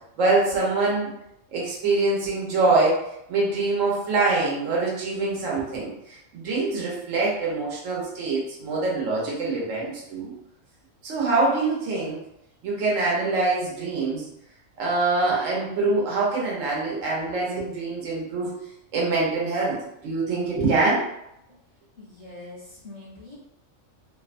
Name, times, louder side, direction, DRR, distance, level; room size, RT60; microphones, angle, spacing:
voice 1, 0.2-1.1 1.5-3.0 3.3-10.3 11.0-12.2 12.6-14.3 14.8-18.6 18.9-19.8 20.0-21.0, right 3 dB, 70° right, -4 dB, 1.2 m, -24 dB
voice 2, 22.0-23.4, left 2 dB, 45° left, -8 dB, 0.6 m, -43 dB
2.7 x 2.1 x 2.5 m, 0.80 s
omnidirectional pair, 1.4 m